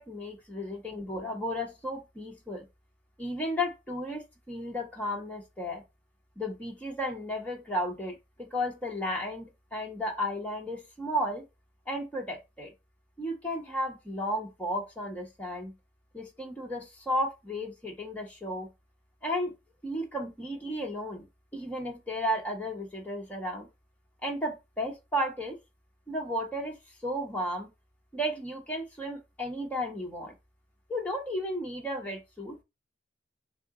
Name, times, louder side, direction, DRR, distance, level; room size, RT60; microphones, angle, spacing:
voice 1, 0.0-2.7 3.2-5.8 6.4-11.5 11.9-12.7 13.2-15.7 16.1-18.7 19.2-19.5 19.8-21.2 21.5-23.7 24.2-25.6 26.1-27.7 28.1-30.3 30.9-32.6, equal, 10° left, 1.0 m, -34 dB
3.8 x 2.6 x 3.6 m
head